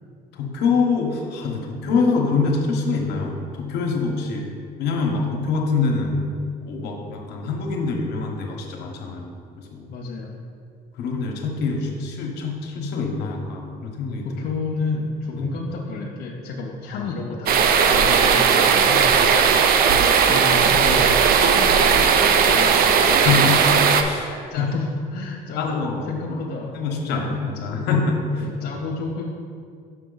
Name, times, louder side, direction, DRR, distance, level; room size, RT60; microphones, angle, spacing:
voice 1, 0.3-4.5 4.8-6.2 6.6-9.9 10.9-14.4 15.3-15.5 16.9-17.1 19.2-19.6 23.0-24.3 24.6-24.7 25.6-26.4 26.7-28.5 28.7-28.8, left 4 dB, 85° left, 1 dB, 1.0 m, -25 dB
voice 2, 9.9-10.5 14.2-19.1 20.3-23.1 24.2-25.8 26.1-27.7 28.4-29.2, left 3 dB, 70° left, -3 dB, 0.7 m, -31 dB
sound 1, 17.5-24.0, right 6 dB, 60° right, 0.5 m, -17 dB
6.1 x 5.6 x 3.9 m, 2.2 s
cardioid pair, 110°, 17 cm